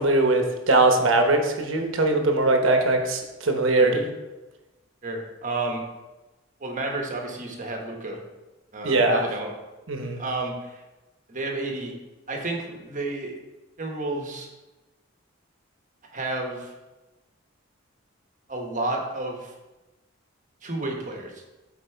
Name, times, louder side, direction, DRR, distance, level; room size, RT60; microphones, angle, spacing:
voice 1, 0.0-4.1 8.8-9.2 9.9-10.2, right 2 dB, 70° right, 4 dB, 1.0 m, -21 dB
voice 2, 5.0-5.8 6.6-8.2 8.7-9.5 10.0-10.8 11.3-11.9 12.3-13.3 13.8-14.5 16.1-16.7 18.5-19.5 20.6-21.4, right 2 dB, 40° right, 1 dB, 1.2 m, -31 dB
8.3 x 4.4 x 4.5 m, 1.1 s
head